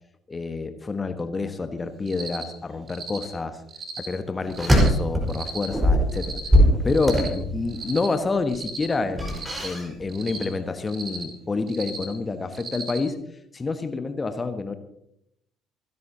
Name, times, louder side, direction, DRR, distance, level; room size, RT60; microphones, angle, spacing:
voice 1, 0.3-3.6 4.0-6.4 6.8-13.2 13.5-14.8, left 3 dB, 25° left, 9 dB, 1.3 m, -28 dB
Cricket, 2.1-2.4 2.9-3.2 3.7-4.1 4.5-4.9 5.3-5.7 6.1-6.5 6.9-7.3 7.7-8.1 8.5-8.9 9.3-9.7 10.1-10.4 10.9-11.2 11.7-12.0 12.5-13.0, right 4 dB, 35° right, 3.0 m, -36 dB
sound 1, 4.5-5.4 5.7-7.8 9.1-10.0 10.3-10.5, equal, 10° right, 4.8 m, -21 dB
27.5 x 11.0 x 2.9 m, 0.76 s
figure-of-eight pair, 50°, 0 cm